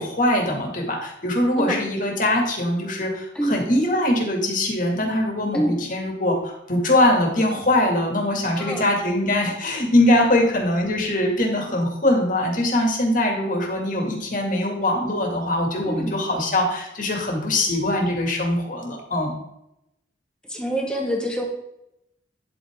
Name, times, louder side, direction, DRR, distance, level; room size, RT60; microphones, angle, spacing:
voice 1, 0.0-19.4, left 1 dB, 45° left, 1 dB, 2.3 m, -22 dB
voice 2, 15.9-16.2 20.5-21.4, right 1 dB, 5° left, 0 dB, 1.8 m, -25 dB
10.5 x 7.9 x 3.7 m, 0.83 s
head